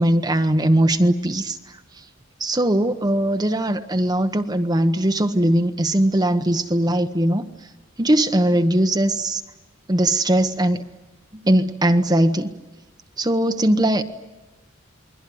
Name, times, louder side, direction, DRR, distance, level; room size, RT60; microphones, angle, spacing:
voice 1, 0.0-1.8 2.4-7.5 8.0-9.4 9.9-10.8 11.4-12.5 13.2-14.0, right 1 dB, 20° right, 7 dB, 0.9 m, -20 dB
28.5 x 22.0 x 9.3 m, 1.1 s
head